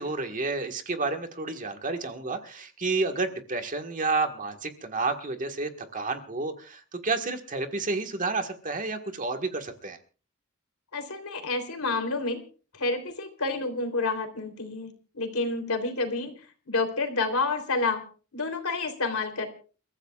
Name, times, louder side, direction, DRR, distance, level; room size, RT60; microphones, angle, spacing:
voice 1, 0.0-10.0, right 3 dB, 35° right, 6 dB, 1.6 m, -30 dB
voice 2, 10.9-12.4 12.7-16.4 16.7-18.0 18.3-19.5, left 3 dB, 70° left, 7 dB, 3.4 m, -29 dB
29.5 x 14.5 x 2.4 m, 0.38 s
head